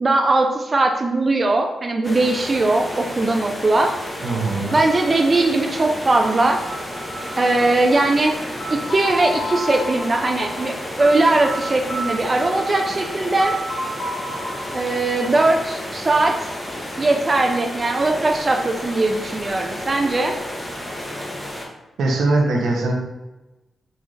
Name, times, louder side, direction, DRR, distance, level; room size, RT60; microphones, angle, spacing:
voice 1, 0.0-3.9 4.7-6.6 7.4-8.3 8.9-13.5 14.7-16.5 17.0-20.3, right 2 dB, 35° right, 3 dB, 0.3 m, -19 dB
sound 1, 2.0-21.6, left 1 dB, 15° left, 0.8 m, -32 dB
voice 2, 4.2-4.8 22.0-22.9, right 2 dB, 85° right, 1 dB, 0.6 m, -21 dB
sound 2, 4.7-16.5, equal, 70° left, 0.6 m, -33 dB
3.9 x 2.4 x 3.1 m, 1.0 s
cardioid pair, 70°, 0 cm